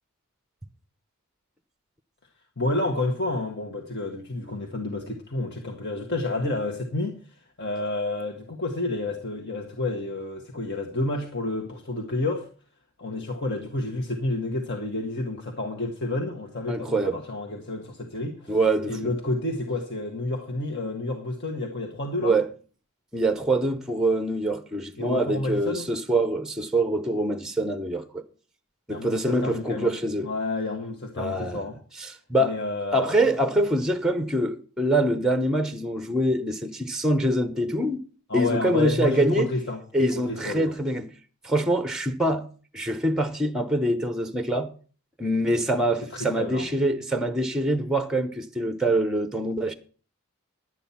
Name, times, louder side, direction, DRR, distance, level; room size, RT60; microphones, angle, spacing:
voice 1, 2.6-12.5 13.0-18.6 18.9-22.4 25.0-25.9 28.9-29.9 30.2-31.8 32.4-33.2 38.3-39.8 40.1-40.7 46.1-46.7, left 2 dB, 50° left, 1.6 m, -30 dB
voice 2, 16.7-17.2 18.5-19.0 22.2-22.5 23.1-28.2 28.9-30.3 31.2-31.6 32.3-32.6 32.9-38.0 38.3-39.5 39.9-41.1 41.4-42.5 42.7-44.7 45.2-49.7, right 1 dB, 5° right, 0.8 m, -24 dB
11.0 x 9.1 x 5.7 m
head